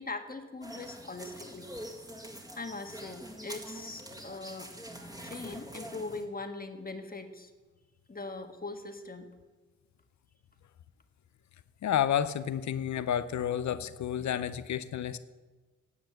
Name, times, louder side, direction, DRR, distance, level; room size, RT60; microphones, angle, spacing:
voice 1, 0.0-1.7 2.6-4.7 5.2-7.5 8.1-9.3, left 3 dB, 30° left, 6 dB, 1.5 m, -41 dB
sound 1, 0.6-6.2, right 1 dB, 15° right, 2.1 m, -45 dB
voice 2, 11.8-15.2, left 9 dB, 70° left, 14 dB, 0.7 m, -30 dB
11.0 x 7.8 x 7.7 m, 1.3 s
supercardioid pair, 40°, 30 cm